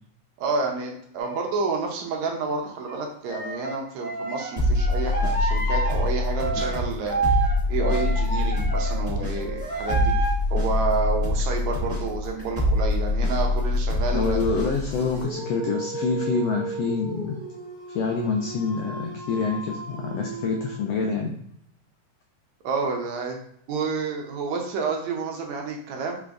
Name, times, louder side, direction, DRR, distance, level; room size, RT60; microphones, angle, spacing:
voice 1, 0.4-7.4 7.7-14.4 22.6-23.4 23.7-26.2, right 4 dB, 75° right, 2 dB, 1.9 m, -29 dB
sound 1, 1.2-1.5 2.9-9.1 9.3-10.3, right 4 dB, 65° left, 1.3 m, -30 dB
sound 2, 4.6-15.2, left 2 dB, 20° left, 0.3 m, -25 dB
voice 2, 14.1-17.3 17.9-21.3, left 4 dB, 85° left, 1 dB, 1.4 m, -26 dB
Dog, 14.8-21.2, right 2 dB, 40° right, 1.2 m, -36 dB
5.1 x 3.3 x 2.4 m, 0.69 s
omnidirectional pair, 3.4 m